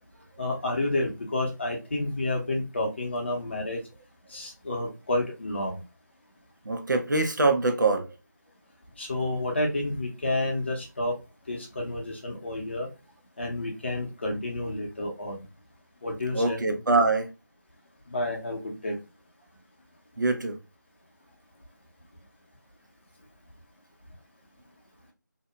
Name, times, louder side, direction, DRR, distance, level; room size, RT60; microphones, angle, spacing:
voice 1, 0.4-3.8 4.3-5.8 9.0-11.1 11.5-12.9 13.4-15.4 16.0-16.6 18.1-19.0, left 1 dB, 35° left, 0.8 m, -30 dB
voice 2, 6.6-8.1 16.3-17.3 20.2-20.6, right 3 dB, 70° right, 0.7 m, -24 dB
2.7 x 2.2 x 2.4 m
figure-of-eight pair, 165°, 10 cm